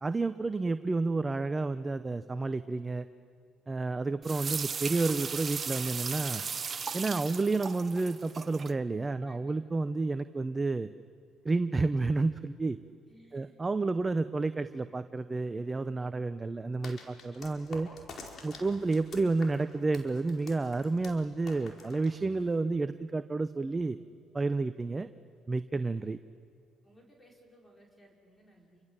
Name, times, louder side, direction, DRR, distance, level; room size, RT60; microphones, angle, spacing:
voice 1, 0.0-3.1 3.7-6.4 6.9-10.9 11.4-12.8 13.3-17.9 18.4-24.0 24.3-25.1 25.5-26.2, right 3 dB, 25° right, 11 dB, 0.8 m, -30 dB
sound 1, 4.2-8.7, right 5 dB, 40° right, 1.1 m, -36 dB
voice 2, 13.1-13.5 25.8-26.0 26.8-28.8, right 1 dB, 15° left, -1 dB, 5.7 m, -59 dB
sound 2, 16.8-22.6, left 4 dB, 55° left, 4.7 m, -49 dB
28.0 x 25.0 x 7.5 m, 2.4 s
supercardioid pair, 70°, 0 cm